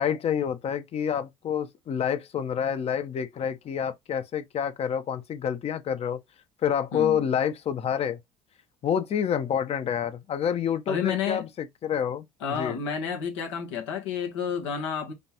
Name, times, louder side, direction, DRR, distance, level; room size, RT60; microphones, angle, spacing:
voice 1, 0.0-6.2 6.6-8.2 8.8-12.8, left 8 dB, 45° left, 0.9 m, -28 dB
voice 2, 6.9-7.3 10.9-11.5 12.4-15.1, left 7 dB, 90° left, 1.5 m, -30 dB
5.2 x 2.5 x 2.9 m
hypercardioid pair, 75°, 15 cm